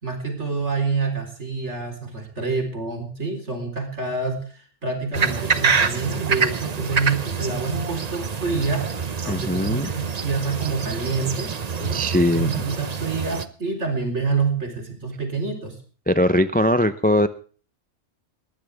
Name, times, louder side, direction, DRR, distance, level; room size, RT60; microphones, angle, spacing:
voice 1, 0.0-12.0 12.3-15.7, right 4 dB, 60° right, 4 dB, 4.4 m, -27 dB
sound 1, 5.1-13.4, right 5 dB, 35° right, 0.8 m, -26 dB
voice 2, 9.3-9.9 11.9-12.5 16.1-17.3, left 1 dB, 10° left, 12 dB, 0.4 m, -20 dB
20.5 x 15.5 x 3.5 m, 0.40 s
omnidirectional pair, 1.3 m